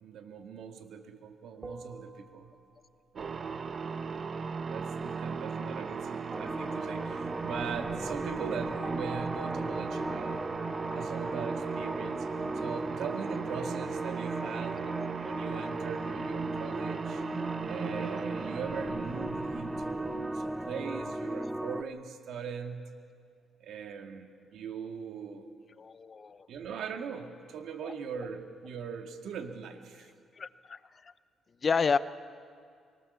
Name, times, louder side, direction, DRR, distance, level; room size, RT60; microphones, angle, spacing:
voice 1, 0.0-2.5 3.1-3.4 3.8-4.3 4.7-10.5 10.9-12.3 12.6-14.8 15.2-17.2 17.7-22.9 23.6-25.5 26.5-30.1, right 6 dB, 75° right, 5 dB, 2.0 m, -40 dB
sound 1, 1.6-3.2 8.8-12.2, right 3 dB, 25° right, 1.5 m, -47 dB
sound 2, 3.2-21.5, right 5 dB, 45° right, 1.0 m, -38 dB
sound 3, 6.3-21.8, right 1 dB, 10° right, 0.7 m, -37 dB
voice 2, 25.8-26.5 27.8-27.9 30.4-30.8 31.6-32.0, left 5 dB, 40° left, 15 dB, 0.7 m, -30 dB
24.0 x 18.5 x 6.9 m, 2.2 s
cardioid pair, 90°, 0 cm